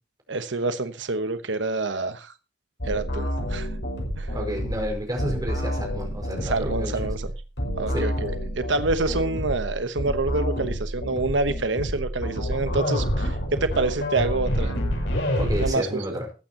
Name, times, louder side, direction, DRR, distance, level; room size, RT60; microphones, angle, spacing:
voice 1, 0.3-2.3 2.8-3.7 4.2-4.3 6.4-7.3 7.8-14.7 15.6-16.2, right 3 dB, 85° right, 10 dB, 1.0 m, -27 dB
sound 1, 2.8-15.7, equal, 70° left, 6.7 m, -28 dB
voice 2, 4.3-7.0 7.9-8.1 15.4-16.3, equal, 20° right, 2 dB, 5.3 m, -31 dB
20.5 x 9.0 x 2.9 m, 0.32 s
head